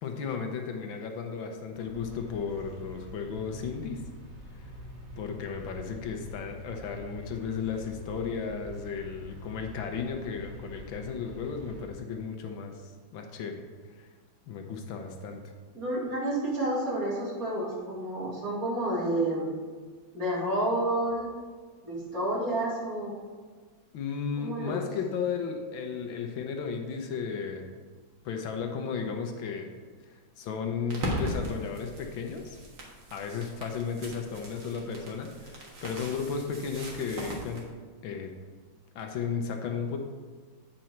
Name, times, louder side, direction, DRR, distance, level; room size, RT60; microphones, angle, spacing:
voice 1, 0.0-4.0 5.2-13.6 13.9-14.1 14.5-15.5 23.9-27.7 28.2-29.7 30.1-32.6 33.1-37.7 38.0-38.3 38.9-40.0, left 6 dB, 80° left, 4 dB, 1.6 m, -34 dB
sound 1, 1.7-11.9, left 1 dB, 25° right, 1.3 m, -45 dB
voice 2, 15.7-19.5 20.1-21.3 21.8-23.1 24.4-24.8 31.5-31.6, right 1 dB, 45° right, -5 dB, 2.6 m, -30 dB
sound 2, 30.9-37.6, right 1 dB, 70° right, 2.2 m, -38 dB
8.8 x 5.3 x 4.5 m, 1.5 s
omnidirectional pair, 2.1 m